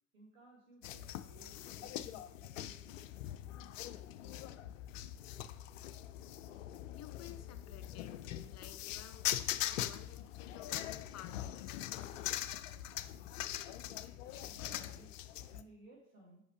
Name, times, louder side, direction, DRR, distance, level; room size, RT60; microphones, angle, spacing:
voice 1, 0.1-3.0 14.5-15.1 15.5-16.4, right 2 dB, 85° right, -3 dB, 2.7 m, -60 dB
sound 1, 0.8-15.6, left 12 dB, 75° left, 0.5 m, -42 dB
voice 2, 7.0-8.2 8.5-11.7, left 10 dB, 40° left, 8 dB, 0.8 m, -55 dB
6.2 x 5.7 x 3.3 m, 0.69 s
figure-of-eight pair, 65°, 39 cm